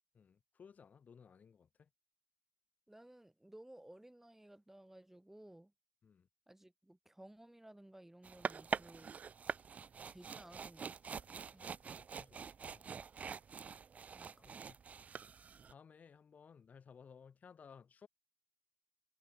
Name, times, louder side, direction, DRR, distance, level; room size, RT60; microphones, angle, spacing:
voice 1, 0.1-1.9 6.0-6.3 11.5-13.0 14.3-14.8 15.7-18.1, left 6 dB, 55° left, 3.8 m, -60 dB
voice 2, 2.9-5.7 6.5-9.1 10.1-10.9 11.5-11.6 14.1-14.5, right 1 dB, 10° right, 4.0 m, -57 dB
sound 1, 8.2-15.7, right 6 dB, 50° right, 0.4 m, -45 dB
supercardioid pair, 50°, 3 cm